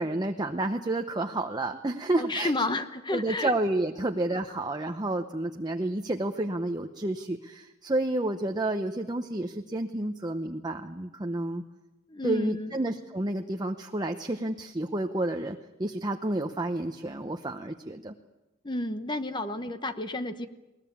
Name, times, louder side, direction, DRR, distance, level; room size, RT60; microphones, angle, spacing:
voice 1, 0.0-2.5 3.1-11.6 12.2-18.1, right 1 dB, 20° right, 5 dB, 0.8 m, -30 dB
voice 2, 2.2-3.5 12.1-12.8 18.6-20.5, left 2 dB, 20° left, 9 dB, 0.9 m, -31 dB
21.5 x 19.5 x 8.6 m, 1.0 s
head